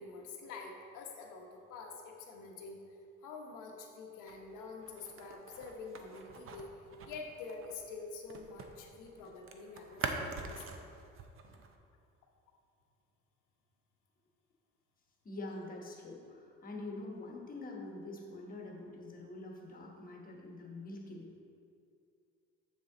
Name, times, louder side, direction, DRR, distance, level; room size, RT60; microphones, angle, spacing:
voice 1, 0.0-2.8 3.2-10.9, left 4 dB, 85° left, 1 dB, 1.2 m, -47 dB
sound 1, 4.2-8.8 9.0-11.8, right 4 dB, 45° right, 0.7 m, -44 dB
voice 2, 15.2-21.4, left 2 dB, 30° left, -1 dB, 1.2 m, -45 dB
7.3 x 6.3 x 3.9 m, 2.5 s
cardioid pair, 140°, 31 cm